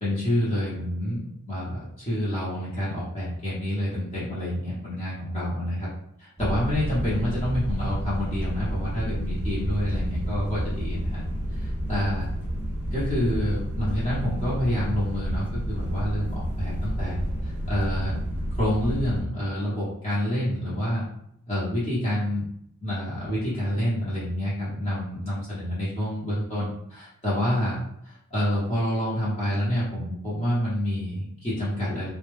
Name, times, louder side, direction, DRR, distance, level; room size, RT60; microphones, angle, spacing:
voice 1, 0.0-5.9 6.2-11.2 11.5-12.2 12.9-18.2 18.5-21.0 21.5-22.4 22.8-27.8 28.0-32.1, equal, 30° left, -10 dB, 0.9 m, -28 dB
sound 1, 6.4-19.2, equal, 10° right, 0.5 m, -30 dB
2.2 x 2.2 x 3.1 m, 0.73 s
head